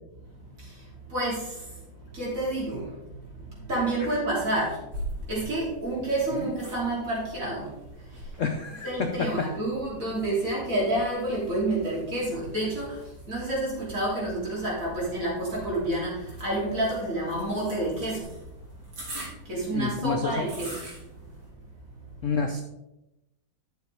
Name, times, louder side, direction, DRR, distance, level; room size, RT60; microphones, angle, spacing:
voice 1, 0.3-8.4 8.8-18.8 19.3-20.8 21.5-22.3, right 1 dB, 40° right, -5 dB, 3.4 m, -30 dB
sound 1, 4.9-21.5, right 1 dB, 70° right, 3.8 m, -45 dB
voice 2, 8.4-9.5 19.7-20.5 22.2-22.6, left 5 dB, 75° left, 5 dB, 0.7 m, -29 dB
11.5 x 6.6 x 3.4 m, 0.91 s
omnidirectional pair, 2.3 m